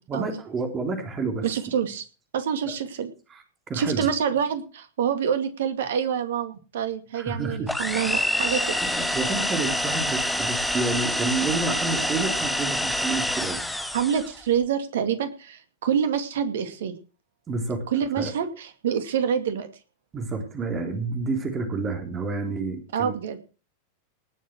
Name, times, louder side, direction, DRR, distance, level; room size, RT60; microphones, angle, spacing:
voice 1, 0.1-1.5 2.7-2.8 3.3-4.1 7.1-7.7 8.8-13.6 17.5-17.9 18.2-18.3 20.1-23.2, right 3 dB, 25° right, 5 dB, 3.6 m, -29 dB
voice 2, 1.4-2.0 2.3-3.1 3.7-8.8 13.9-16.9 17.9-19.7 22.9-23.4, right 8 dB, 60° right, 10 dB, 2.3 m, -26 dB
sound 1, 7.7-14.4, left 1 dB, 5° left, 1.7 m, -27 dB
19.0 x 7.3 x 6.2 m, 0.35 s
figure-of-eight pair, 90°, 0 cm